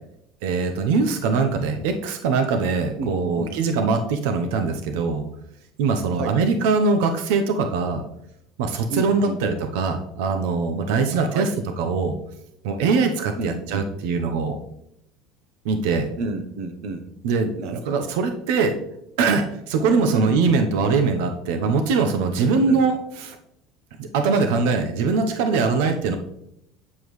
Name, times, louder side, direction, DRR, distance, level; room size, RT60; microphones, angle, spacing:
voice 1, 0.4-5.2 5.8-8.0 8.6-11.5 11.8-12.1 12.6-14.6 15.6-16.1 17.2-18.7 19.2-23.0 23.2-23.4 24.0-26.2, right 4 dB, 80° right, 6 dB, 0.8 m, -22 dB
voice 2, 3.0-3.6 6.1-6.4 8.9-9.4 11.3-11.5 13.4-13.9 16.2-17.1 17.6-18.1 20.1-20.6 22.6-22.8, right 3 dB, 50° right, 8 dB, 0.9 m, -31 dB
8.4 x 7.2 x 3.2 m, 0.77 s
cardioid pair, 175°, 0 cm